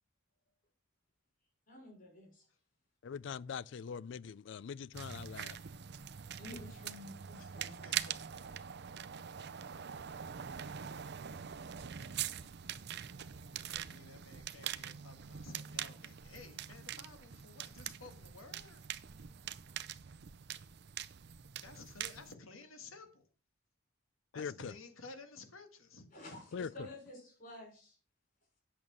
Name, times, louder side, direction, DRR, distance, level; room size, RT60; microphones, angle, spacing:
voice 1, 1.7-2.4 6.4-7.8 26.1-28.0, left 1 dB, 45° left, 5.7 m, -51 dB
voice 2, 3.0-5.6 24.4-24.7 26.5-26.7, left 6 dB, 60° left, 0.4 m, -42 dB
sound 1, 4.9-22.3, right 9 dB, 55° right, 0.5 m, -44 dB
voice 3, 7.4-8.8 13.7-18.8 21.6-23.2 24.3-26.1, left 3 dB, 90° left, 1.9 m, -54 dB
8.7 x 7.0 x 6.1 m
head